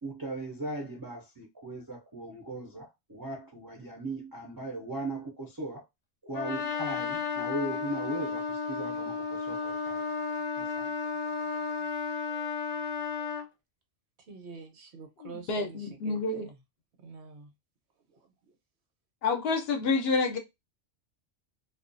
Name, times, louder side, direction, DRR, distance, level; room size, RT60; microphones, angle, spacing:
voice 1, 0.0-5.8 6.2-10.0 10.6-10.9, right 2 dB, 35° right, 0.3 m, -38 dB
Trumpet, 6.3-13.5, left 5 dB, 30° left, 0.7 m, -33 dB
voice 2, 14.2-16.6 17.0-17.5 18.1-18.6, right 4 dB, 70° right, 0.9 m, -47 dB
voice 3, 15.5-16.5 19.2-20.4, left 4 dB, 65° left, 0.8 m, -28 dB
2.3 x 2.2 x 2.5 m
omnidirectional pair, 1.2 m